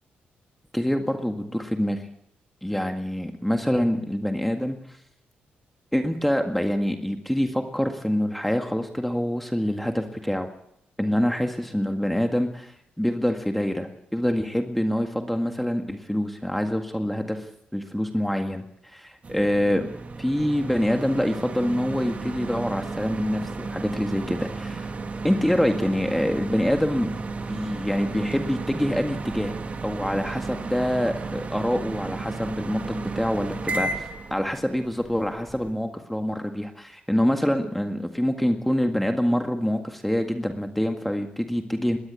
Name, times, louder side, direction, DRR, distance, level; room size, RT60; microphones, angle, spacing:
voice 1, 0.7-2.0 2.6-4.8 5.9-10.5 11.0-12.7 13.0-19.9 20.2-24.9 25.2-27.1 27.5-29.6 29.8-34.1 34.3-42.0, equal, 5° left, 4 dB, 1.8 m, -25 dB
sound 1, 19.2-35.7, right 3 dB, 40° right, 2.5 m, -34 dB
20.0 x 17.5 x 8.4 m, 0.76 s
cardioid pair, 90°, 4 cm